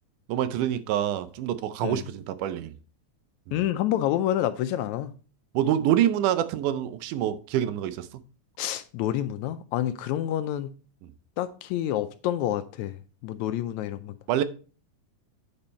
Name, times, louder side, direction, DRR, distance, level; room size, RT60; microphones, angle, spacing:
voice 1, 0.3-2.7 3.5-3.6 5.5-8.1 14.3-14.4, right 11 dB, 85° right, 2.2 m, -26 dB
voice 2, 3.5-5.1 8.6-10.7 11.4-12.9 13.2-14.1, left 12 dB, 80° left, 1.8 m, -28 dB
8.9 x 5.4 x 4.2 m
omnidirectional pair, 3.5 m